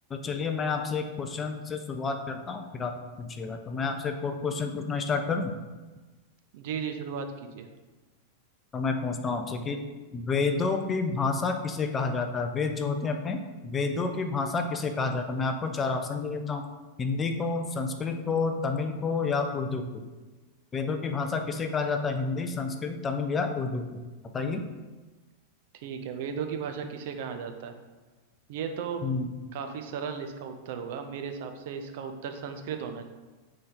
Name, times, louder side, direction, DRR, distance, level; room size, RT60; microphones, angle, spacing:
voice 1, 0.1-5.5 8.7-9.8 10.1-16.6 17.0-20.0 20.7-23.9 24.3-24.7 29.0-29.4, left 4 dB, 20° left, 5 dB, 0.4 m, -29 dB
voice 2, 6.5-7.7 25.7-27.7 28.5-29.0 29.5-33.0, right 6 dB, 50° right, 6 dB, 0.4 m, -35 dB
3.8 x 3.2 x 3.8 m, 1.2 s
figure-of-eight pair, 90°, 0 cm